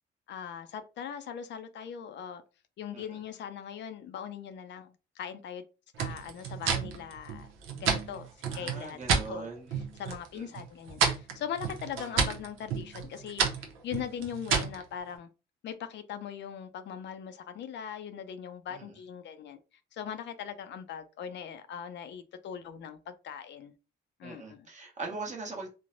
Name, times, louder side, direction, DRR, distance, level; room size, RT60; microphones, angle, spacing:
voice 1, 0.3-2.4 2.8-5.6 6.0-7.5 7.7-9.0 9.3-15.3 15.6-19.6 19.9-23.7 24.2-24.7, left 8 dB, 65° left, 0.4 m, -40 dB
sound 1, 6.0-9.3 9.7-10.3 10.5-14.8, right 6 dB, 90° right, 0.6 m, -30 dB
voice 2, 8.5-9.7 10.3-10.6 18.7-19.0 24.2-25.7, right 3 dB, 35° right, 1.0 m, -41 dB
3.1 x 2.1 x 2.5 m
cardioid pair, 90°, 20 cm